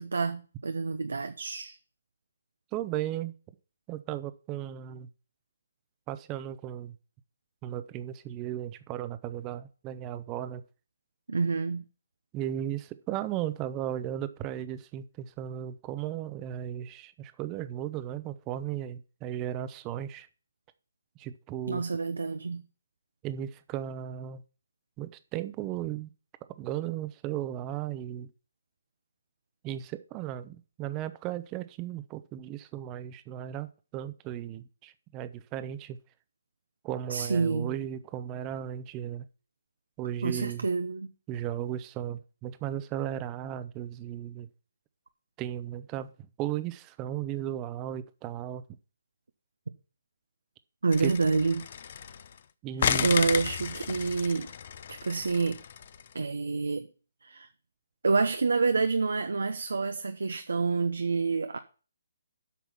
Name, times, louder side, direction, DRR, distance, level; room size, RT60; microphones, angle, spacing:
voice 1, 0.0-1.8 11.3-11.8 21.7-22.6 37.1-37.7 40.2-41.1 50.8-51.7 53.0-54.5 54.9-55.6 56.1-56.9 57.2-57.5 58.0-61.6, right 4 dB, 75° right, 0.9 m, -28 dB
voice 2, 2.7-3.3 3.9-5.1 6.1-7.0 7.6-10.6 12.3-20.3 21.2-21.8 23.2-24.4 25.0-26.1 26.6-28.3 29.6-36.0 36.8-39.3 40.0-40.7 41.3-44.5 45.4-46.1 46.4-48.6 51.0-51.1 52.6-53.1, right 11 dB, 20° right, 0.8 m, -35 dB
sound 1, 50.9-52.4 52.8-56.1, left 8 dB, 50° left, 0.7 m, -33 dB
8.4 x 6.0 x 7.1 m
figure-of-eight pair, 145°, 0 cm